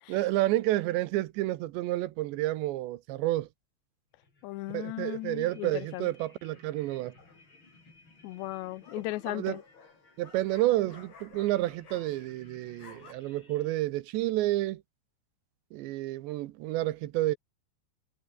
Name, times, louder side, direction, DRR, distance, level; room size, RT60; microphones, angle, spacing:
voice 1, 0.1-3.5 4.7-7.1 9.3-9.6 10.2-14.8 15.7-17.4, right 16 dB, 85° right, 3.3 m, -30 dB
sound 1, 4.2-13.8, left 3 dB, 25° left, 6.9 m, -59 dB
voice 2, 4.4-6.1 8.2-9.6, left 18 dB, 90° left, 3.0 m, -36 dB
sound 2, 7.2-7.6 8.5-12.4 12.7-13.1, left 5 dB, 65° left, 8.5 m, -54 dB
omnidirectional pair, 5.1 m